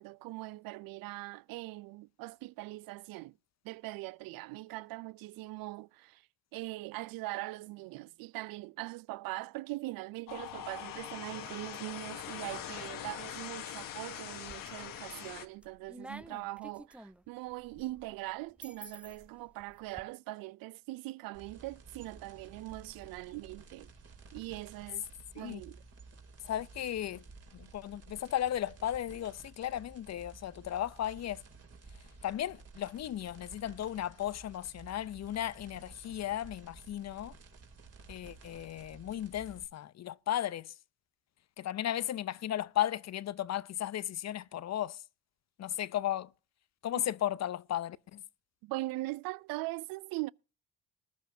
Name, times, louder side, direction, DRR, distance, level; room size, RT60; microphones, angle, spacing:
voice 1, 0.0-3.4 3.6-6.3 6.5-23.9 24.3-25.1 25.4-25.8 47.0-47.1 48.6-50.3, right 19 dB, 70° right, 0.5 m, -41 dB
sound 1, 10.3-15.5, left 11 dB, 65° left, 1.3 m, -43 dB
sound 2, 14.4-15.0 15.4-20.0, right 1 dB, 5° right, 0.7 m, -51 dB
sound 3, 21.3-39.7, right 4 dB, 40° right, 3.0 m, -54 dB
voice 2, 26.4-27.2 27.5-31.4 32.2-37.3 38.1-40.7 41.6-45.0 45.6-46.3 46.8-48.2, left 12 dB, 45° left, 0.6 m, -35 dB
20.0 x 11.0 x 2.7 m
supercardioid pair, 60°, 36 cm